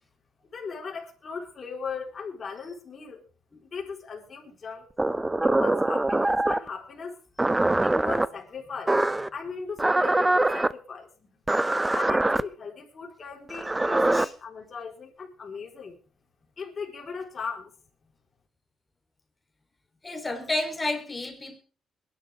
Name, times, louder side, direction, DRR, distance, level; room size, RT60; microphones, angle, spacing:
voice 1, 0.5-3.2 3.6-4.9 5.4-7.2 7.8-9.0 9.3-11.3 11.9-16.0 16.6-17.7, left 5 dB, 45° left, 3.9 m, -38 dB
sound 1, 5.0-6.7 7.4-8.3 8.9-9.3 9.8-10.7 11.5-12.4 13.5-14.2, right 2 dB, 15° right, 0.5 m, -23 dB
voice 2, 20.0-21.6, left 2 dB, 20° left, 3.4 m, -31 dB
21.5 x 11.0 x 3.5 m
cardioid pair, 90°, 0 cm